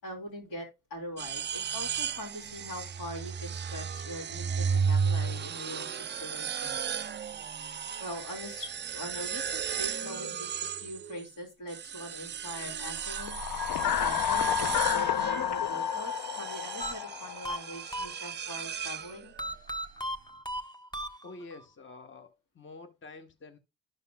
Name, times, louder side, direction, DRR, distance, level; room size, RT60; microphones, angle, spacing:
voice 1, 0.0-6.8 8.0-13.4 13.8-19.3, left 1 dB, 80° left, 3.4 m, -42 dB
sound 1, 1.2-11.3 11.7-19.5, right 6 dB, 25° right, 0.4 m, -35 dB
sound 2, 13.1-17.7, left 9 dB, 55° left, 0.6 m, -30 dB
sound 3, 16.8-18.6 19.4-21.7, right 1 dB, 10° left, 1.2 m, -37 dB
voice 2, 21.2-23.6, left 3 dB, 25° left, 0.9 m, -48 dB
12.0 x 5.4 x 2.2 m
supercardioid pair, 55°, 44 cm